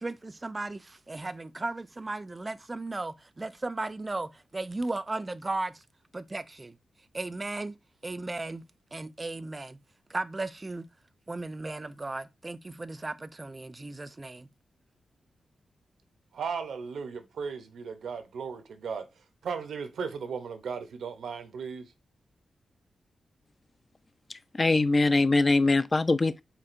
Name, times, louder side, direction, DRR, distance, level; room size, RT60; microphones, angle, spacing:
voice 1, 0.0-5.8 6.1-6.8 7.1-7.8 8.0-8.6 8.9-9.8 10.1-10.9 11.3-14.5, right 2 dB, 30° right, 0.4 m, -35 dB
voice 2, 16.3-19.1 19.4-21.9, right 6 dB, 80° right, 0.6 m, -36 dB
voice 3, 24.5-26.4, left 3 dB, 35° left, 0.3 m, -22 dB
4.4 x 2.9 x 2.5 m
cardioid pair, 60°, 0 cm